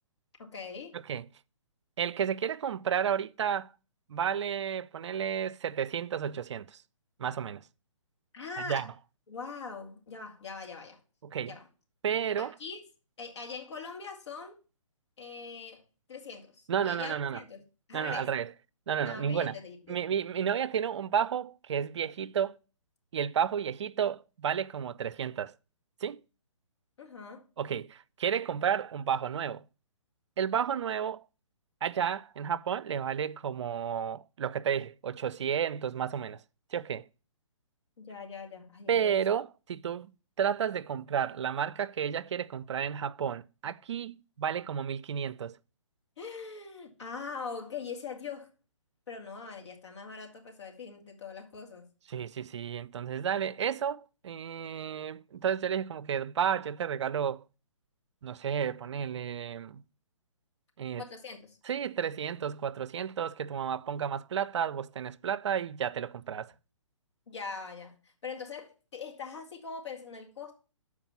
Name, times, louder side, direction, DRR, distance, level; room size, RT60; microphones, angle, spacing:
voice 1, 0.4-1.0 8.3-8.9 9.3-11.0 11.4-11.7 12.4-12.8 13.2-14.6 15.2-15.8 16.1-17.6 17.9-18.3 19.1-20.0 27.0-27.4 38.0-39.2 46.2-48.5 49.1-51.9 61.0-61.6 67.3-70.5, left 5 dB, 60° left, 1.9 m, -42 dB
voice 2, 2.0-3.7 4.1-6.8 7.2-7.6 8.6-8.9 11.2-11.5 12.0-12.5 16.7-17.4 17.9-18.5 18.9-19.6 19.9-22.6 23.1-25.5 26.0-26.2 27.6-29.6 30.4-31.2 31.8-36.4 36.7-37.0 38.9-40.1 40.4-45.6 52.1-57.4 58.2-59.8 60.8-61.1 61.7-66.5, right 8 dB, 60° right, 0.4 m, -32 dB
7.1 x 4.7 x 6.8 m
figure-of-eight pair, 135°, 17 cm